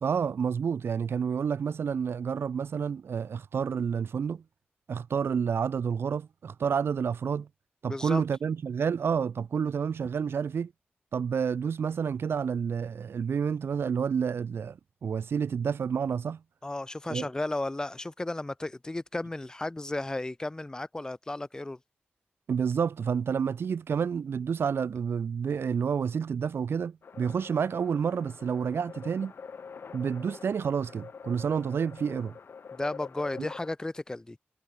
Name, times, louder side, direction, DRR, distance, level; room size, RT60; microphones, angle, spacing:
voice 1, 0.0-4.4 4.9-7.5 7.8-10.7 11.1-16.4 17.1-17.3 22.5-29.3 29.9-32.3 33.4-33.5, right 6 dB, 85° right, 0.6 m, -29 dB
voice 2, 7.9-8.2 16.6-21.8 32.8-34.4, left 2 dB, 20° left, 0.9 m, -34 dB
sound 1, 27.0-33.7, left 5 dB, 70° left, 7.4 m, -45 dB
wide cardioid pair, 125°, 4 cm